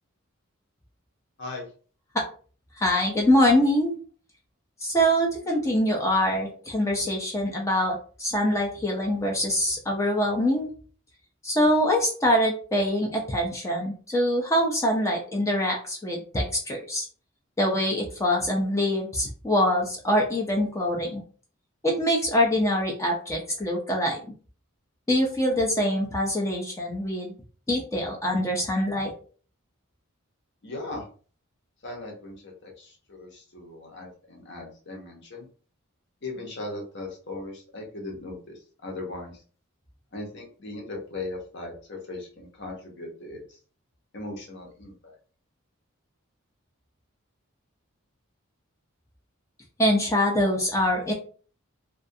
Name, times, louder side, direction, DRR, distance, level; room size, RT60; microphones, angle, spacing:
voice 1, 2.8-4.0 4.8-10.7 11.4-17.1 17.6-21.2 21.8-24.2 25.1-27.3 27.7-29.1 49.8-51.1, equal, 15° left, 0 dB, 0.4 m, -24 dB
voice 2, 30.6-31.1 31.8-35.5 36.2-38.5 38.8-39.3 40.1-43.6 44.1-45.1, left 2 dB, 55° left, 0 dB, 0.8 m, -38 dB
2.3 x 2.3 x 2.6 m, 0.41 s
head